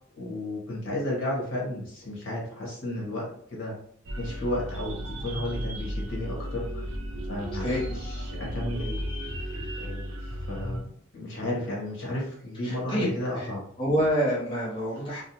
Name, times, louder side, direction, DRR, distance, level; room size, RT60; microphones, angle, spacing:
voice 1, 0.1-3.7 4.2-6.8 7.3-9.0 9.8-13.6, left 1 dB, 70° left, -4 dB, 1.1 m, -33 dB
sound 1, 4.0-10.8, equal, 80° right, 0.6 m, -34 dB
voice 2, 12.6-13.1 13.3-13.5 13.8-15.2, equal, 25° left, -6 dB, 0.8 m, -27 dB
2.6 x 2.1 x 2.9 m, 0.63 s
head